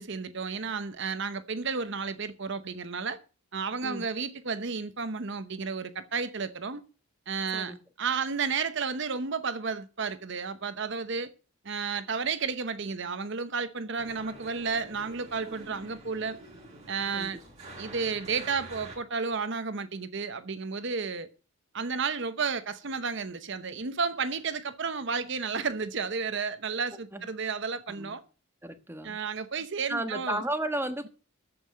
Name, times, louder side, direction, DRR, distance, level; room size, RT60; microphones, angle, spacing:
voice 1, 0.0-3.2 3.5-6.8 7.3-11.3 11.6-16.4 16.9-17.4 17.8-21.3 21.7-28.2 29.0-30.4, right 5 dB, 60° right, 0.9 m, -32 dB
sound 1, 14.0-19.0, right 2 dB, 30° right, 6.9 m, -47 dB
voice 2, 28.6-29.2 29.9-31.1, right 1 dB, 10° right, 1.2 m, -33 dB
14.0 x 5.7 x 7.6 m
head